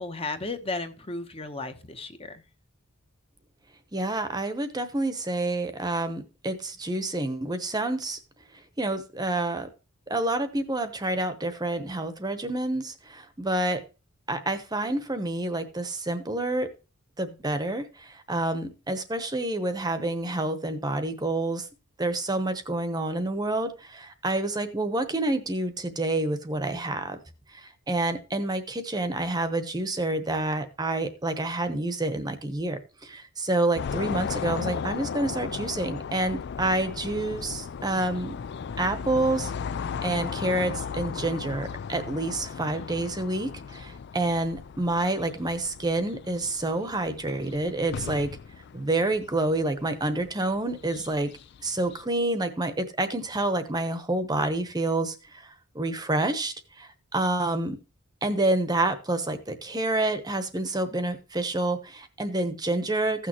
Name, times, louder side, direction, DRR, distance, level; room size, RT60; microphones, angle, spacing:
voice 1, 0.0-2.4, left 3 dB, 25° left, 8 dB, 1.0 m, -34 dB
voice 2, 3.9-8.2 8.8-9.7 10.1-13.8 14.3-16.7 17.2-21.7 22.0-27.2 27.5-38.4 38.8-39.5 40.0-48.3 48.7-51.3 51.6-57.8 58.2-63.3, right 2 dB, 20° right, 9 dB, 0.9 m, -28 dB
sound 1, 33.8-52.0, left 6 dB, 50° left, 0.4 m, -36 dB
15.5 x 6.4 x 3.0 m, 0.32 s
head